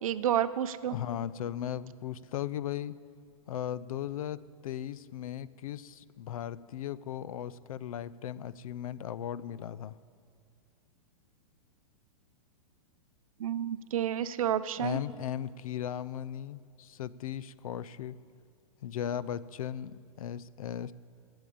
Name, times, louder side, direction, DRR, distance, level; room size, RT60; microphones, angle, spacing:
voice 1, 0.0-0.9 13.4-15.0, right 10 dB, 65° right, 14 dB, 0.6 m, -30 dB
voice 2, 0.9-2.9 3.5-10.0 14.8-18.2 18.8-20.9, left 10 dB, 70° left, 18 dB, 0.5 m, -37 dB
13.5 x 7.9 x 8.6 m, 2.2 s
supercardioid pair, 175°, 19 cm